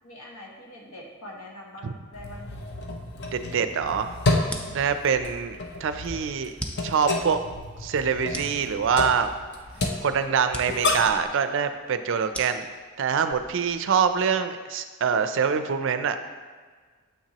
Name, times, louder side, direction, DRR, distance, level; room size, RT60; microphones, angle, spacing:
voice 1, 0.0-2.5 4.4-4.9, left 1 dB, 90° left, -2 dB, 1.3 m, -44 dB
sound 1, 2.1-11.3, left 2 dB, 50° left, 0.7 m, -30 dB
voice 2, 3.3-4.1 4.7-6.5 6.8-7.4 7.8-9.3 10.0-12.7 13.0-16.2, right 6 dB, 60° right, 9 dB, 0.4 m, -25 dB
sound 2, 4.4-14.3, equal, 5° left, 0.4 m, -42 dB
7.3 x 5.9 x 2.9 m, 1.5 s
head